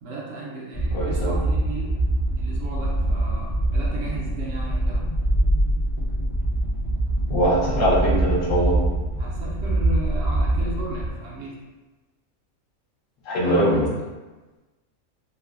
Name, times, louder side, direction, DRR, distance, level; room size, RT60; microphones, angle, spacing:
voice 1, 0.0-2.0 2.4-5.1 9.2-11.6 13.4-14.1, right 2 dB, 70° right, -4 dB, 0.9 m, -35 dB
sound 1, 0.7-11.1, right 1 dB, 30° left, 0.6 m, -24 dB
voice 2, 0.9-1.4 7.3-8.7 13.2-13.9, right 1 dB, 70° left, -5 dB, 1.2 m, -21 dB
3.1 x 2.1 x 2.3 m, 1.2 s
omnidirectional pair, 1.4 m